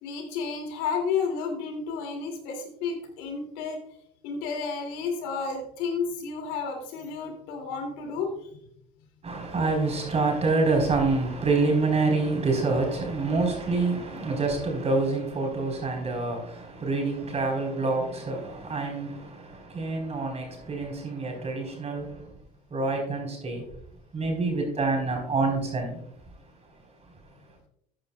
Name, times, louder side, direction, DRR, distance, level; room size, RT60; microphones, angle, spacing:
voice 1, 0.0-3.8 4.2-8.5, left 5 dB, 80° left, 2.7 m, -31 dB
voice 2, 9.2-22.3 22.7-23.6 24.1-26.0, right 3 dB, 35° right, 4.2 m, -27 dB
13.5 x 9.5 x 2.3 m
supercardioid pair, 85°, 19 cm